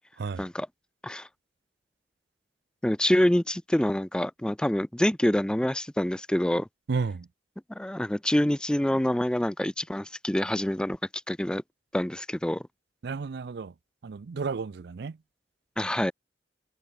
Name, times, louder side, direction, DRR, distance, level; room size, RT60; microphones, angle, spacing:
voice 1, 2.8-6.7 7.7-11.0 11.3-11.6 11.9-12.6 15.8-16.1, left 1 dB, 5° left, 0.4 m, -26 dB
voice 2, 6.9-7.3 13.0-13.7 14.0-15.2, right 4 dB, 65° right, 0.4 m, -32 dB
head